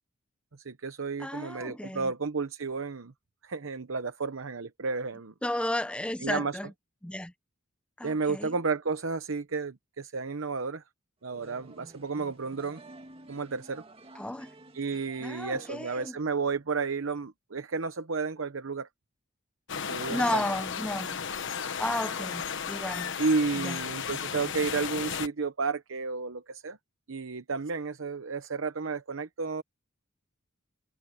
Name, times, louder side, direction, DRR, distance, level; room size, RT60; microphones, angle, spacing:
voice 1, 0.5-3.1 3.4-5.3 6.2-6.6 8.0-10.8 11.2-12.8 13.3-13.8 14.7-18.9 19.9-20.4 23.2-26.8 27.1-29.6, right 4 dB, 70° right, 0.9 m, -32 dB
voice 2, 1.2-2.1 5.4-6.7 7.0-7.3 8.0-8.5 14.2-14.5 15.2-16.2 20.1-21.2 21.8-23.2 23.6-23.8, left 1 dB, 5° left, 0.6 m, -33 dB
sound 1, 11.3-16.1, right 2 dB, 30° right, 2.1 m, -52 dB
sound 2, 19.7-25.3, left 7 dB, 65° left, 1.3 m, -34 dB
head